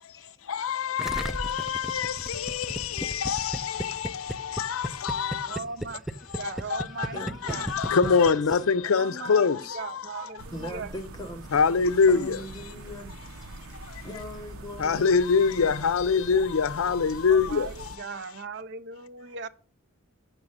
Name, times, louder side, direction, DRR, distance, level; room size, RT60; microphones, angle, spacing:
voice 1, 0.5-5.6 6.3-10.3 11.5-12.4 13.9-14.0 14.8-18.0, left 5 dB, 80° left, 0.5 m, -25 dB
Gurgling, 1.0-8.8, equal, ahead, 0.4 m, -34 dB
voice 2, 5.5-6.0 6.4-7.2 7.5-7.7 8.8-10.9 16.8-17.0 17.3-19.5, right 5 dB, 55° right, 0.5 m, -38 dB
voice 3, 7.1-7.7 8.2-8.6 10.5-11.8 12.1-13.1 14.0-15.2 15.6-16.3 17.1-17.2, equal, 20° left, 1.1 m, -41 dB
sound 1, 10.4-18.0, right 2 dB, 85° right, 0.7 m, -44 dB
7.2 x 6.6 x 6.5 m
head